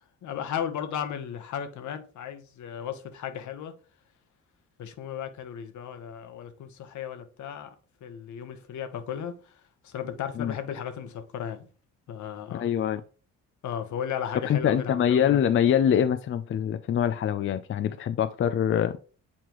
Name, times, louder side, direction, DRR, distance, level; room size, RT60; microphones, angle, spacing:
voice 1, 0.2-3.7 4.8-7.7 8.0-9.5 9.8-11.7 12.1-12.6 13.6-15.1, left 8 dB, 70° left, 1.1 m, -35 dB
voice 2, 12.5-13.0 14.4-19.0, left 9 dB, 45° left, 0.4 m, -24 dB
7.4 x 4.3 x 3.0 m
cardioid pair, 90°, 30 cm